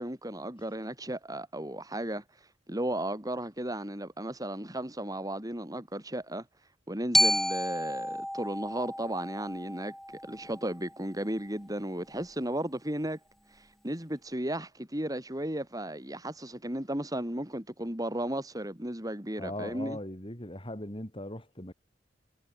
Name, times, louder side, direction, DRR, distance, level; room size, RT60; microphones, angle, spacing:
voice 1, 0.0-2.2 2.7-6.4 6.9-9.9 10.3-13.2 13.6-20.0, right 1 dB, 20° right, 4.5 m, -35 dB
Glockenspiel, 7.1-11.3, equal, ahead, 1.0 m, -31 dB
voice 2, 19.4-21.7, left 1 dB, 30° left, 6.3 m, -39 dB
head